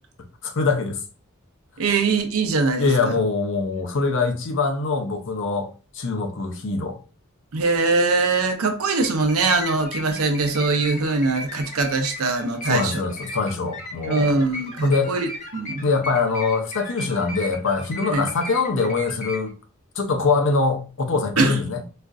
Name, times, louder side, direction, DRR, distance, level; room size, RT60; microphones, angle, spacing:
voice 1, 0.4-1.0 2.8-5.7 5.9-7.0 12.6-14.3 14.8-15.1 15.8-19.5 20.0-21.8, left 4 dB, 60° left, 0.6 m, -23 dB
voice 2, 1.8-3.2 7.5-13.1 14.1-15.8 18.1-18.3 21.4-21.6, right 3 dB, 80° right, 0.7 m, -22 dB
sound 1, 8.9-19.5, left 1 dB, 35° left, 1.0 m, -37 dB
4.2 x 2.5 x 2.4 m
head